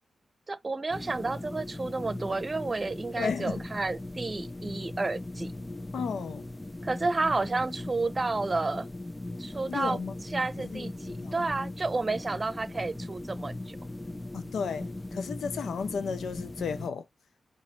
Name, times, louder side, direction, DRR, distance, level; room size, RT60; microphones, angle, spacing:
voice 1, 0.5-5.5 6.8-8.9 9.4-10.0 10.3-13.8, right 3 dB, 35° right, 0.8 m, -31 dB
sound 1, 0.9-16.9, left 1 dB, 15° left, 0.4 m, -39 dB
voice 2, 3.2-3.6 5.9-6.5 9.7-10.1 10.6-11.3 14.3-17.0, left 6 dB, 85° left, 0.5 m, -34 dB
4.2 x 2.6 x 4.4 m
cardioid pair, 65°, 0 cm